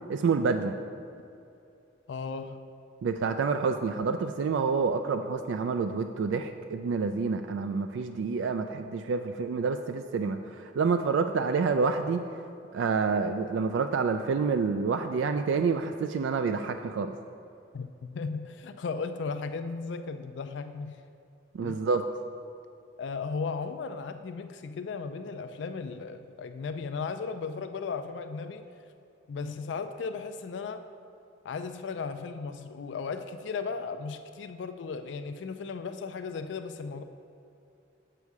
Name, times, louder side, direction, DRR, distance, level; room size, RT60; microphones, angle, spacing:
voice 1, 0.1-0.8 3.0-12.2 12.7-17.1 21.5-22.0, right 5 dB, 90° right, 7 dB, 0.3 m, -28 dB
voice 2, 2.1-2.6 17.7-21.0 21.6-21.8 23.0-28.7 29.3-30.8 31.4-37.0, left 4 dB, 75° left, 8 dB, 0.4 m, -36 dB
7.2 x 6.8 x 4.7 m, 2.6 s
head